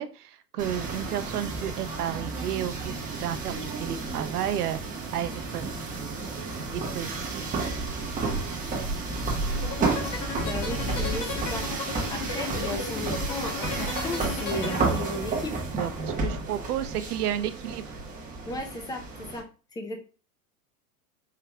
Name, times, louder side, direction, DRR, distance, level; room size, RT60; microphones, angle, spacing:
voice 1, 0.0-5.6 6.7-7.6 15.8-18.0, right 10 dB, 90° right, 11 dB, 0.6 m, -32 dB
sound 1, 0.6-19.4, right 3 dB, 20° right, 1.1 m, -31 dB
sound 2, 9.5-15.5, left 5 dB, 45° left, 1.5 m, -35 dB
voice 2, 10.4-11.6 12.1-15.5 18.5-19.5 19.7-20.0, left 2 dB, 10° left, 5 dB, 0.5 m, -35 dB
4.6 x 3.3 x 2.2 m, 0.36 s
hypercardioid pair, 110°, 44 cm